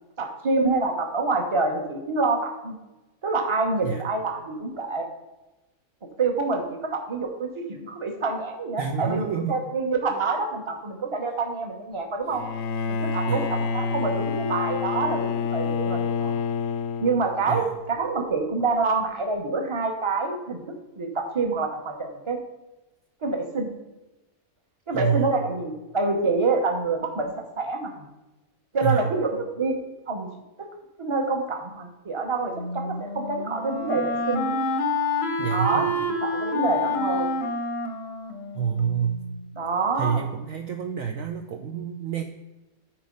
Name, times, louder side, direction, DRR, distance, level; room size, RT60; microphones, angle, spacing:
voice 1, 0.2-2.8 3.2-5.1 6.2-12.5 12.9-16.4 17.0-22.4 23.2-23.8 24.9-27.3 27.6-28.1 28.7-29.8 30.1-30.3 30.6-30.7 31.0-34.7 35.5-37.3 39.6-40.3, right 3 dB, 20° right, 3 dB, 0.9 m, -27 dB
voice 2, 8.8-9.7 13.3-13.5 17.5-17.7 24.9-25.4 28.8-29.1 35.4-35.9 38.5-39.3 39.9-42.2, right 7 dB, 65° right, 5 dB, 0.9 m, -28 dB
Bowed string instrument, 12.3-17.6, left 5 dB, 85° left, 1.2 m, -28 dB
Wind instrument woodwind instrument, 32.5-39.4, left 2 dB, 50° left, 0.8 m, -28 dB
10.0 x 4.5 x 5.3 m, 1.1 s
omnidirectional pair, 1.7 m